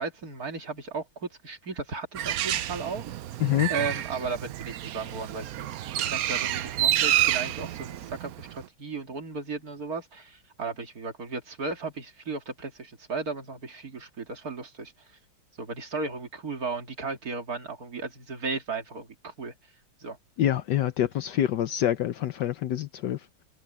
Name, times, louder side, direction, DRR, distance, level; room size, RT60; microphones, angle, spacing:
voice 1, 0.0-3.0 3.7-14.9 15.6-19.5 20.0-20.2, right 4 dB, 45° right, 2.7 m, -35 dB
Bird, 2.1-8.6, right 12 dB, 75° right, 0.8 m, -29 dB
voice 2, 20.4-23.2, left 11 dB, 65° left, 1.2 m, -26 dB
omnidirectional pair, 2.2 m